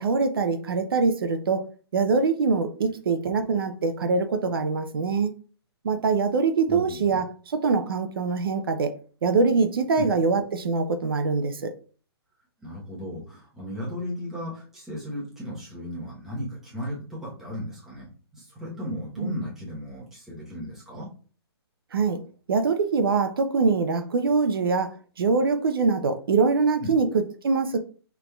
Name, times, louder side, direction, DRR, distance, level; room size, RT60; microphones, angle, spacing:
voice 1, 0.0-1.6 1.9-5.3 5.8-8.9 9.2-11.7 19.2-19.4 21.9-22.2 22.5-27.8, right 4 dB, 60° right, 7 dB, 0.6 m, -23 dB
voice 2, 6.7-7.2 10.0-10.1 12.6-21.1 26.8-26.9, left 1 dB, 5° right, -8 dB, 1.0 m, -35 dB
5.9 x 3.4 x 2.3 m, 0.40 s
hypercardioid pair, 175°, 14 cm